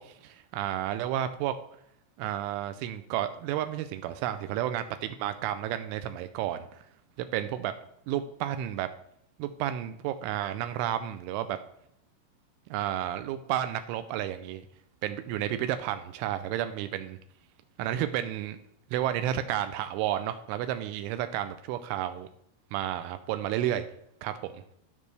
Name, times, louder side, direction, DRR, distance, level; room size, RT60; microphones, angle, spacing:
voice 1, 0.0-1.5 2.2-6.8 7.3-7.7 8.1-8.9 9.4-11.6 12.7-14.6 15.0-17.2 17.8-18.6 18.9-22.3 22.7-23.9 24.2-24.6, right 11 dB, 85° right, 10 dB, 2.8 m, -31 dB
16.0 x 5.4 x 3.3 m, 0.73 s
omnidirectional pair, 5.9 m